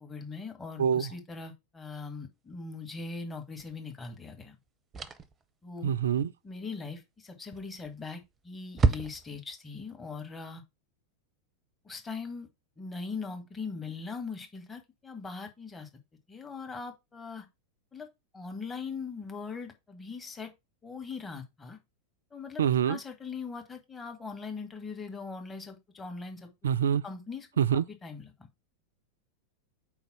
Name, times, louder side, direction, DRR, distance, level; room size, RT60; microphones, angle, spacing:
voice 1, 0.0-4.6 5.6-5.9 6.4-10.6 11.8-12.5 12.8-15.9 16.3-17.4 17.9-18.1 18.3-20.5 20.8-21.8 22.3-26.5 27.0-28.3, left 4 dB, 15° left, 1.4 m, -40 dB
voice 2, 0.8-1.1 5.8-6.3 22.6-23.0 26.6-27.0 27.6-27.8, right 8 dB, 65° right, 0.3 m, -25 dB
sound 1, 3.6-3.8 4.9-5.4 7.5-8.0 8.3-8.4 8.8-9.5, right 4 dB, 20° right, 0.6 m, -29 dB
4.4 x 4.0 x 5.7 m
figure-of-eight pair, 90°, 0 cm